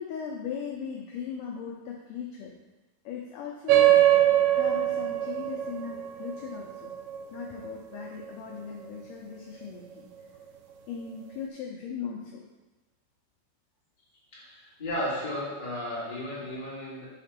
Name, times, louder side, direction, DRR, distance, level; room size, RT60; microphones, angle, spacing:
voice 1, 0.0-2.5 3.1-6.9 7.3-10.1 10.9-12.5 14.1-14.6, left 6 dB, 80° left, -1 dB, 1.9 m, -39 dB
sound 1, 3.7-8.6, right 12 dB, 85° right, 1.9 m, -24 dB
voice 2, 14.3-17.0, left 1 dB, 15° left, -9 dB, 1.6 m, -34 dB
6.7 x 4.1 x 5.8 m, 1.1 s
omnidirectional pair, 4.5 m